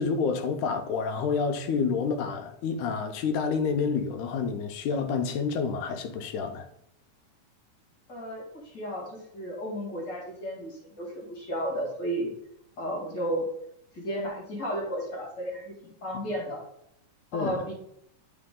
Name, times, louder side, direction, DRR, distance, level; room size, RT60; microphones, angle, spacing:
voice 1, 0.0-6.7 17.3-17.6, left 5 dB, 75° left, 2.1 m, -28 dB
voice 2, 8.1-12.3 12.8-13.5 13.9-16.6 17.3-17.7, equal, 35° left, 2.3 m, -33 dB
11.0 x 3.9 x 3.7 m
omnidirectional pair, 3.7 m